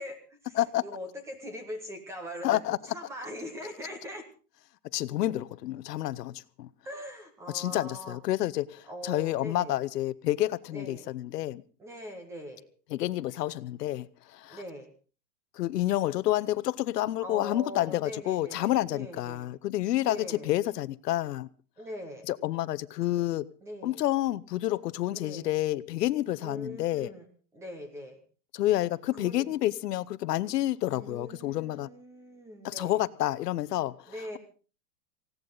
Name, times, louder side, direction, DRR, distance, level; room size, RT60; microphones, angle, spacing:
voice 1, 0.0-4.3 6.8-8.2 8.9-9.8 10.7-11.1 11.8-12.6 14.5-14.9 17.2-19.5 20.0-20.5 21.8-22.3 23.6-24.0 25.1-25.5 26.4-27.3 27.5-28.2 29.2-29.5 30.8-33.1 34.1-34.4, equal, 5° right, 0.7 m, -42 dB
voice 2, 2.4-2.8 4.9-6.7 7.5-11.6 12.9-14.6 15.5-21.5 22.3-23.4 23.8-27.1 28.5-31.9 32.6-34.0, left 14 dB, 70° left, 0.9 m, -29 dB
19.0 x 16.5 x 3.9 m
supercardioid pair, 180°, 50 cm